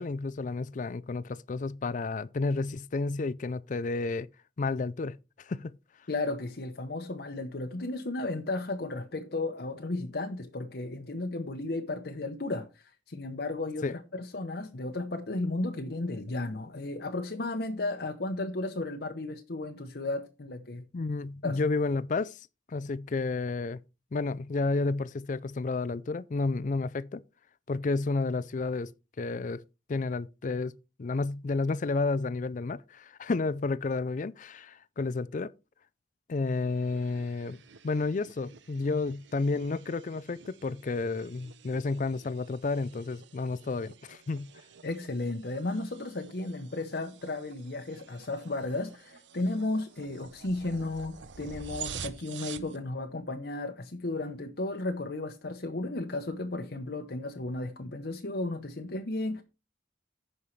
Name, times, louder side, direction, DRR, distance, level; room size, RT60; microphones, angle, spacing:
voice 1, 0.0-4.3 4.6-5.7 13.8-13.9 20.9-22.4 22.7-23.8 24.1-27.2 27.7-28.9 29.2-29.6 29.9-30.7 31.0-35.5 36.3-37.6 37.8-44.5, left 3 dB, 45° left, 0.4 m, -31 dB
voice 2, 6.1-20.8 21.4-21.6 44.8-59.4, left 2 dB, 60° left, 0.8 m, -34 dB
sound 1, 36.5-52.8, right 7 dB, 80° right, 0.8 m, -48 dB
15.5 x 5.5 x 3.2 m
head